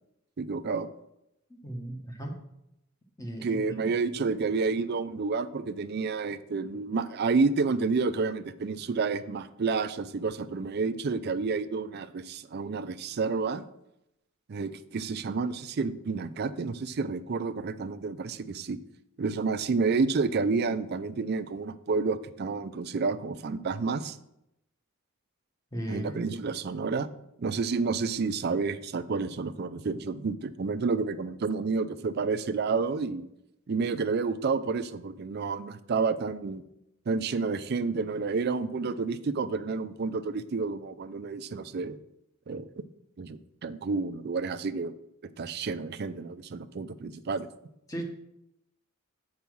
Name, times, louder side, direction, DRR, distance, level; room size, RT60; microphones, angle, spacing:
voice 1, 0.4-0.9 3.4-13.7 14.5-18.8 19.2-24.2 25.9-27.1 27.4-33.3 33.7-36.6 37.1-42.0 42.5-42.7 43.2-44.9 45.4-47.5, right 4 dB, 45° right, 11 dB, 0.4 m, -30 dB
voice 2, 1.6-2.4 3.2-3.8 25.7-26.3 47.9-48.0, right 1 dB, 15° left, 2 dB, 1.1 m, -37 dB
7.0 x 4.8 x 6.0 m, 0.84 s
head